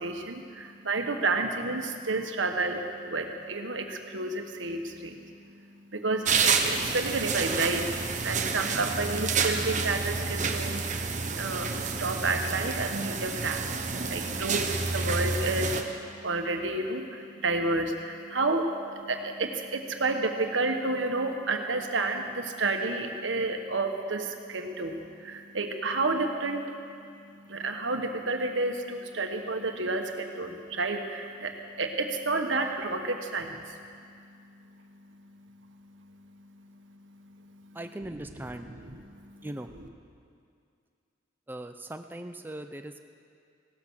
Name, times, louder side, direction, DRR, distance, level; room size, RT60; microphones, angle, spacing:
voice 1, 0.0-37.8 38.7-39.5, right 3 dB, 85° right, 4 dB, 1.4 m, -31 dB
sound 1, 6.2-15.8, right 4 dB, 40° right, 1.0 m, -29 dB
voice 2, 37.7-38.8 39.4-39.7 41.5-43.0, right 1 dB, 10° right, 6 dB, 0.5 m, -39 dB
17.0 x 13.0 x 6.3 m, 2.4 s
head